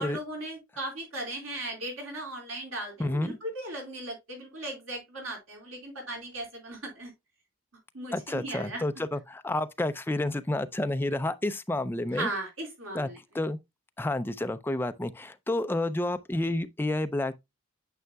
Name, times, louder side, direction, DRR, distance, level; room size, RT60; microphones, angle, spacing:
voice 1, 0.0-7.1 7.9-8.8 12.1-13.2, right 1 dB, 85° right, 4.1 m, -37 dB
voice 2, 3.0-3.3 8.1-12.3 12.9-13.1 13.3-13.6 14.0-17.4, left 1 dB, 10° left, 0.4 m, -30 dB
9.3 x 5.6 x 2.2 m
head